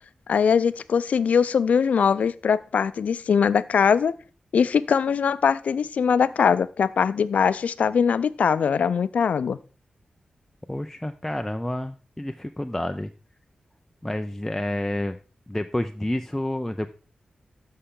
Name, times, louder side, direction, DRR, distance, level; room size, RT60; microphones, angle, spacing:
voice 1, 0.3-4.1 4.5-9.6, left 6 dB, 80° left, 16 dB, 0.4 m, -21 dB
voice 2, 10.7-13.1 14.0-15.2 15.5-16.9, left 1 dB, 10° left, 7 dB, 0.4 m, -29 dB
13.5 x 5.6 x 3.7 m, 0.36 s
wide cardioid pair, 100°, 2 cm